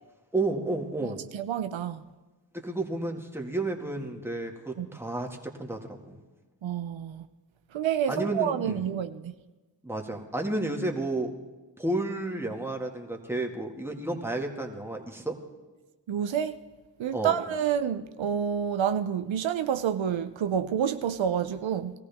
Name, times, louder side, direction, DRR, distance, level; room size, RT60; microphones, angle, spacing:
voice 1, 0.3-1.3 2.5-6.2 8.1-8.8 9.8-11.3 11.8-15.4 17.1-17.4, right 2 dB, 5° right, 1 dB, 2.0 m, -31 dB
voice 2, 1.0-2.0 4.8-4.9 6.6-7.3 7.7-9.3 16.1-16.6 17.0-21.9, right 8 dB, 80° right, 10 dB, 0.6 m, -28 dB
20.5 x 14.5 x 3.6 m, 1.2 s
cardioid pair, 50°, 45 cm